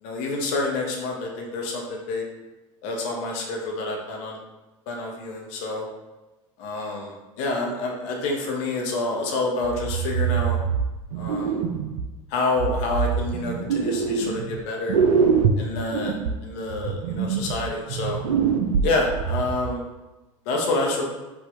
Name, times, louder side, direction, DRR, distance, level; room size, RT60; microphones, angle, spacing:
voice 1, 0.0-2.3 2.8-4.4 4.9-5.9 6.6-10.6 11.1-11.6 12.3-15.0 15.6-16.2 16.4-18.2 18.8-19.8 20.5-21.1, left 2 dB, 55° left, -1 dB, 1.0 m, -28 dB
sound 1, 9.6-12.1 12.6-14.6 14.9-19.7, right 6 dB, 70° right, 0.5 m, -24 dB
5.1 x 2.7 x 3.5 m, 1.1 s
figure-of-eight pair, 75°, 18 cm